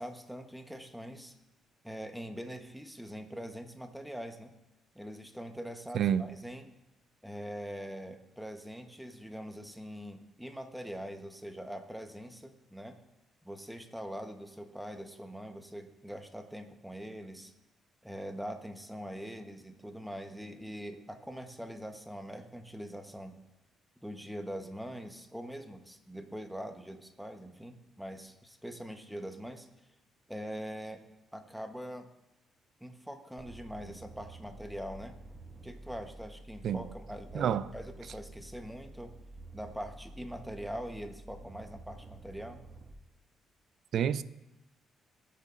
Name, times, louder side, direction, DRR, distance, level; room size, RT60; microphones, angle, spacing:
voice 1, 0.0-1.4 1.8-4.5 4.9-6.7 7.2-13.0 13.4-17.5 18.0-23.4 24.0-29.7 30.3-31.0 31.3-32.1 32.8-35.2 35.6-39.2 39.5-42.6, equal, ahead, 0.9 m, -43 dB
voice 2, 5.9-6.3 36.6-36.8 37.3-37.7 43.9-44.2, right 9 dB, 65° right, 0.4 m, -28 dB
sound 1, 33.4-42.9, right 2 dB, 25° right, 1.5 m, -50 dB
19.0 x 6.8 x 2.5 m
cardioid pair, 90°, 0 cm